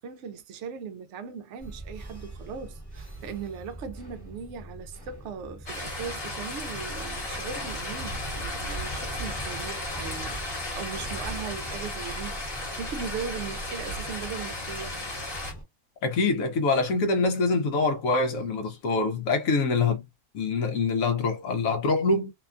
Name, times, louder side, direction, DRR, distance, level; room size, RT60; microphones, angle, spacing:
voice 1, 0.0-15.1, right 6 dB, 65° right, 0.7 m, -39 dB
sound 1, 1.6-15.6, right 2 dB, 15° left, 1.0 m, -43 dB
sound 2, 5.7-15.5, left 1 dB, 45° left, 1.5 m, -35 dB
voice 2, 16.0-20.0 20.3-22.3, left 3 dB, 70° left, 1.0 m, -25 dB
2.8 x 2.2 x 2.4 m
omnidirectional pair, 1.5 m